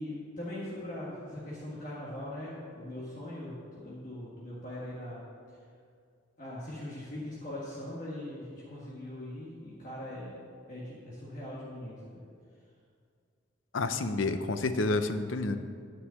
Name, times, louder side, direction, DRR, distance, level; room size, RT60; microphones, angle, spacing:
voice 1, 0.0-5.2 6.4-10.4 10.7-12.2, left 1 dB, 40° left, -7 dB, 1.8 m, -41 dB
voice 2, 13.7-15.6, left 3 dB, 85° left, 9 dB, 0.7 m, -29 dB
9.9 x 5.5 x 8.2 m, 2.2 s
head